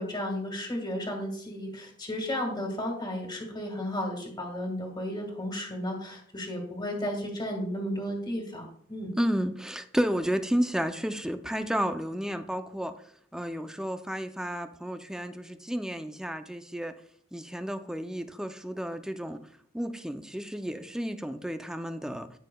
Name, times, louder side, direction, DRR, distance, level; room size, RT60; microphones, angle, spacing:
voice 1, 0.0-9.1, left 1 dB, 25° left, 1 dB, 1.7 m, -33 dB
voice 2, 9.2-12.9 13.3-16.9 17.3-19.5 19.7-22.3, equal, 5° right, 8 dB, 0.4 m, -32 dB
14.0 x 5.5 x 2.3 m, 0.63 s
head